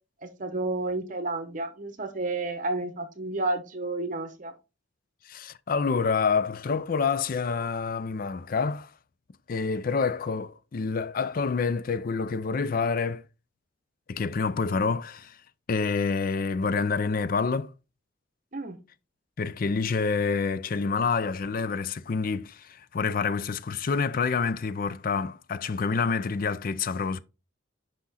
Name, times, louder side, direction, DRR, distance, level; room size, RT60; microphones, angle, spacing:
voice 1, 0.2-4.5 18.5-18.8, right 2 dB, 40° right, 0.8 m, -31 dB
voice 2, 5.3-8.9 9.5-13.2 14.1-15.4 15.7-17.7 19.4-27.2, left 5 dB, 45° left, 0.4 m, -27 dB
5.9 x 5.1 x 4.1 m
head